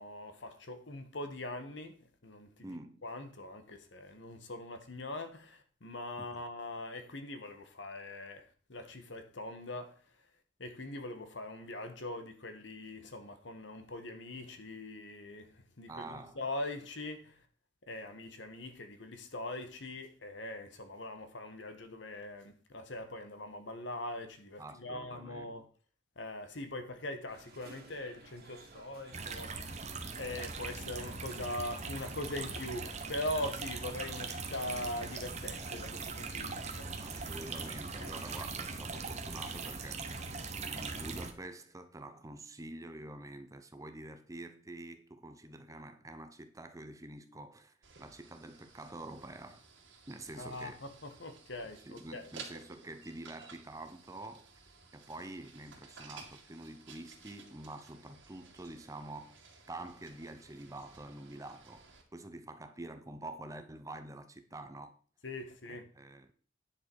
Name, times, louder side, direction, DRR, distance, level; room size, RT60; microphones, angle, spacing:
voice 1, 0.0-1.9 2.2-2.7 3.0-9.9 10.6-17.4 17.9-25.7 26.2-29.6 30.2-36.9 38.0-38.1 50.4-52.3 65.2-65.9, left 1 dB, 65° left, 1.4 m, -42 dB
voice 2, 2.6-3.0 6.2-6.3 15.9-16.4 24.6-25.6 37.0-40.2 40.5-49.6 50.1-50.8 51.8-59.4 59.7-61.9 62.1-65.0 65.7-66.3, right 2 dB, 15° right, 0.7 m, -47 dB
sound 1, 27.3-39.7, right 3 dB, 50° right, 2.3 m, -57 dB
sound 2, 29.1-41.3, right 4 dB, 35° right, 1.1 m, -41 dB
sound 3, 47.8-62.0, right 5 dB, 75° right, 2.3 m, -55 dB
10.0 x 6.6 x 4.6 m
head